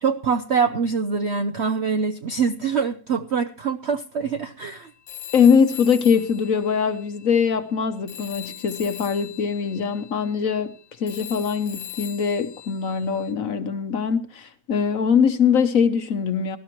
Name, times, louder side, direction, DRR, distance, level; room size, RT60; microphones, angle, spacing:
voice 1, 0.0-4.9, right 5 dB, 60° right, 0.7 m, -24 dB
Telephone, 5.1-7.8 8.1-13.3, left 10 dB, 75° left, 1.4 m, -41 dB
voice 2, 5.3-16.6, left 6 dB, 55° left, 1.2 m, -22 dB
18.5 x 12.5 x 3.1 m
omnidirectional pair, 2.0 m